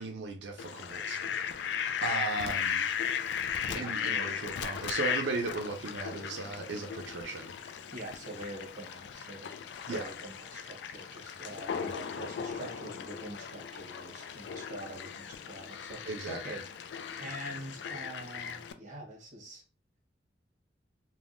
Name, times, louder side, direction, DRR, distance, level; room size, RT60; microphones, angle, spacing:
voice 1, 0.0-1.6 2.0-2.9 3.8-7.5 9.9-10.1 16.0-16.4, right 3 dB, 90° right, 0.4 m, -36 dB
Fowl, 0.6-18.7, left 8 dB, 80° left, 0.3 m, -37 dB
voice 2, 3.7-4.2 7.9-9.6 9.9-19.6, right 1 dB, 45° right, 1.0 m, -45 dB
3.4 x 2.2 x 2.5 m
head